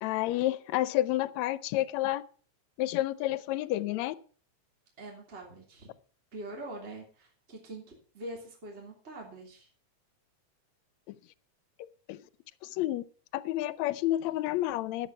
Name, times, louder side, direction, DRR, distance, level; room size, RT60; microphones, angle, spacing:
voice 1, 0.0-2.2 2.8-4.2 11.1-11.2 11.8-12.2 12.6-13.0 13.3-15.1, left 15 dB, 75° left, 17 dB, 1.9 m, -30 dB
voice 2, 5.0-5.9 6.3-9.7, right 1 dB, 20° right, -1 dB, 3.2 m, -44 dB
12.5 x 8.6 x 5.8 m, 0.41 s
omnidirectional pair, 3.3 m